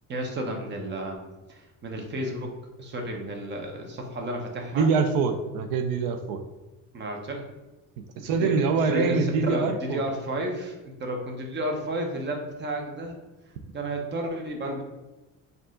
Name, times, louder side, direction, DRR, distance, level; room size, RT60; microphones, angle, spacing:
voice 1, 0.1-1.2 1.5-4.9 6.9-7.5 8.2-13.1 13.7-14.8, right 1 dB, 30° right, 2 dB, 0.8 m, -32 dB
voice 2, 4.7-6.4 8.2-10.0, right 4 dB, 80° right, 7 dB, 0.6 m, -24 dB
4.6 x 2.6 x 3.7 m, 1.1 s
cardioid pair, 130°, 34 cm